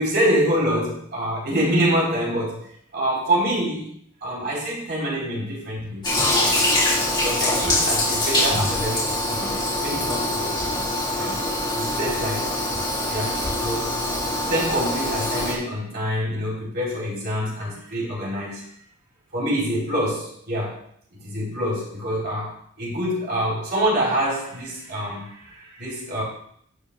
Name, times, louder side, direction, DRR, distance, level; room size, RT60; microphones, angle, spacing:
voice 1, 0.0-2.6 2.9-6.0 6.4-6.6 7.2-10.8 11.1-11.4 11.7-12.6 13.0-14.0 14.4-18.6 19.3-20.8 21.1-26.2, equal, 55° right, -5 dB, 4.1 m, -26 dB
Toilet flush, 6.0-15.5, left 1 dB, 20° left, 3.3 m, -24 dB
11.5 x 5.1 x 3.7 m, 0.65 s
head